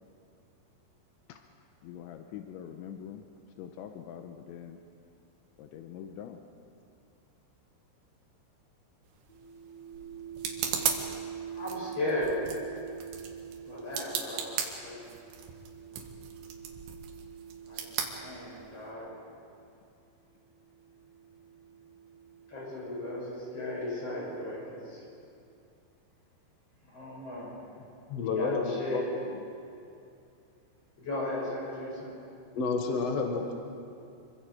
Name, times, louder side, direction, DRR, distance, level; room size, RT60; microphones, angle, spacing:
voice 1, 1.8-3.3 3.6-4.8 5.6-6.4, left 9 dB, 85° left, 5 dB, 3.2 m, -44 dB
sound 1, 9.1-18.9, right 7 dB, 80° right, 4.1 m, -38 dB
sound 2, 9.3-19.7 20.6-24.3, right 8 dB, 5° left, 3.4 m, -46 dB
voice 2, 11.5-12.4 13.7-14.5 14.8-15.1 17.7-19.2 22.5-25.0 26.8-27.7 28.2-29.1 31.0-32.2, left 1 dB, 30° left, -4 dB, 7.8 m, -36 dB
voice 3, 28.1-29.4 32.5-33.5, left 4 dB, 60° left, 2 dB, 1.6 m, -30 dB
27.5 x 24.0 x 5.0 m, 2.5 s
omnidirectional pair, 5.3 m